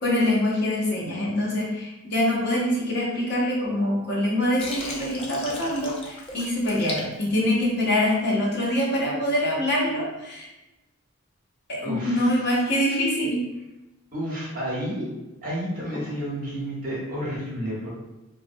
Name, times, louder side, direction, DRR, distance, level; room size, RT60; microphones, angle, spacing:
voice 1, 0.0-10.5 11.7-13.4, left 1 dB, 50° left, -5 dB, 0.7 m, -24 dB
Water, 4.6-8.0, left 2 dB, 25° left, 0.3 m, -37 dB
voice 2, 11.8-12.4 14.1-15.1 15.4-17.9, equal, 40° right, -6 dB, 1.0 m, -31 dB
2.4 x 2.1 x 2.6 m, 1.0 s
head